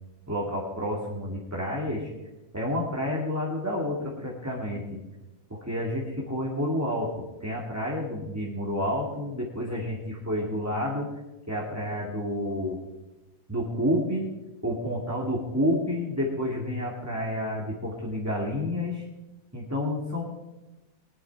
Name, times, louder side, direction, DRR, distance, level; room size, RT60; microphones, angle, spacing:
voice 1, 0.3-2.1 2.5-5.0 5.5-11.1 11.5-12.8 13.5-14.3 14.6-19.0 19.5-20.2, left 1 dB, 10° right, -3 dB, 2.0 m, -29 dB
20.5 x 11.5 x 4.6 m, 1.0 s
omnidirectional pair, 2.0 m